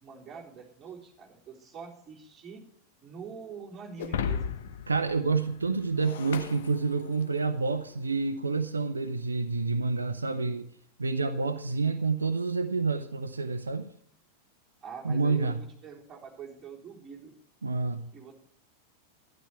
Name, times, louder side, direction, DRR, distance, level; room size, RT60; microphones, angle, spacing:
voice 1, 0.0-2.6 3.0-4.6 14.8-17.3 18.1-18.3, right 6 dB, 20° right, 3.7 m, -45 dB
Shatter, 4.0-7.5, left 7 dB, 60° left, 0.9 m, -36 dB
voice 2, 4.9-10.7 11.0-13.9 15.0-15.6 17.6-18.1, right 4 dB, 75° right, 0.7 m, -28 dB
12.0 x 12.0 x 4.5 m
figure-of-eight pair, 90°, 0 cm